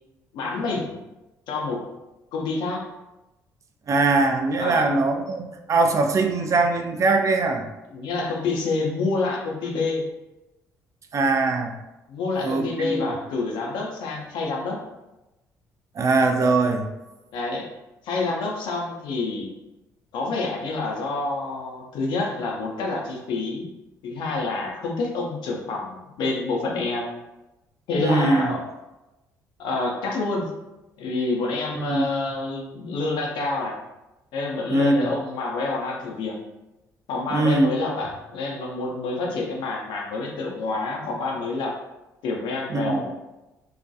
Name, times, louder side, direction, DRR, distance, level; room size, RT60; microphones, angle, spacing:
voice 1, 0.3-0.9 1.5-1.8 2.3-2.9 4.6-4.9 7.9-10.0 12.1-14.8 17.3-17.7 18.0-19.5 20.1-23.7 24.0-27.1 27.9-28.6 29.6-30.5 31.0-33.8 34.3-36.4 37.1-41.7 42.2-43.1, left 3 dB, 65° left, 0 dB, 0.5 m, -27 dB
voice 2, 3.9-7.7 11.1-11.7 12.4-13.1 16.0-16.9 28.0-28.5 31.8-32.1 34.7-35.1 37.3-37.7 42.7-43.0, right 3 dB, 40° right, 5 dB, 0.3 m, -21 dB
2.3 x 2.2 x 2.6 m, 1.0 s
hypercardioid pair, 50°, 9 cm